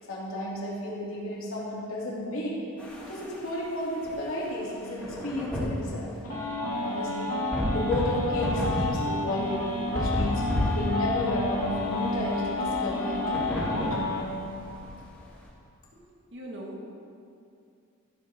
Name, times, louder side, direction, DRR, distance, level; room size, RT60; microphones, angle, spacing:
voice 1, 0.1-2.6 3.1-6.1 6.8-7.4 7.7-10.5 10.7-13.8, left 1 dB, 65° left, -6 dB, 2.9 m, -32 dB
sound 1, 2.8-15.5, equal, 5° left, 2.6 m, -34 dB
sound 2, 6.2-14.2, left 2 dB, 85° left, 2.5 m, -30 dB
voice 2, 16.3-16.9, equal, 55° right, -2 dB, 1.8 m, -40 dB
15.0 x 8.0 x 3.7 m, 2.5 s
head